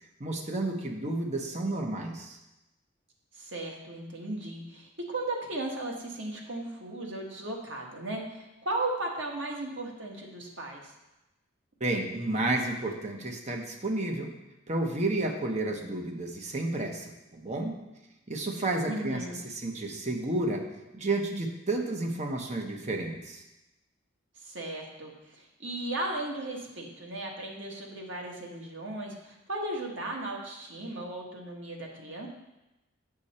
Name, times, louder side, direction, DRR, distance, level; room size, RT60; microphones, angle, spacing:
voice 1, 0.2-2.4 11.8-14.3 14.7-17.7 18.3-20.6 20.9-23.4, right 2 dB, 35° right, 2 dB, 1.0 m, -31 dB
voice 2, 3.3-10.9 18.8-19.4 24.4-32.3, right 2 dB, 70° right, 0 dB, 1.6 m, -36 dB
8.0 x 6.6 x 4.3 m, 0.96 s
head